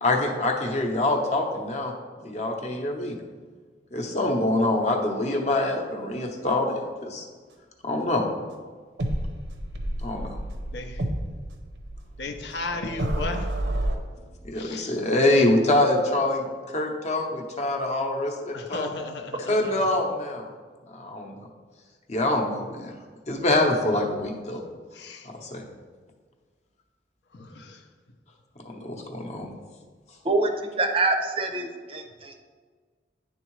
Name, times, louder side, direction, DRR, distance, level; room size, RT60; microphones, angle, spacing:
voice 1, 0.0-1.9 2.2-3.2 3.9-7.2 7.8-8.2 10.0-10.4 14.4-18.9 19.4-20.5 20.9-21.3 22.1-22.9 23.3-24.6 25.2-25.6 28.8-29.5, left 2 dB, 40° left, 2 dB, 0.8 m, -25 dB
sound 1, 9.0-14.0, right 1 dB, 70° right, 0.7 m, -30 dB
voice 2, 12.2-13.5 14.6-14.8 18.5-19.6 25.0-25.2, left 3 dB, 70° left, 5 dB, 0.6 m, -34 dB
voice 3, 30.8-32.4, right 3 dB, 30° right, 4 dB, 0.5 m, -25 dB
9.9 x 3.6 x 3.1 m, 1.5 s
head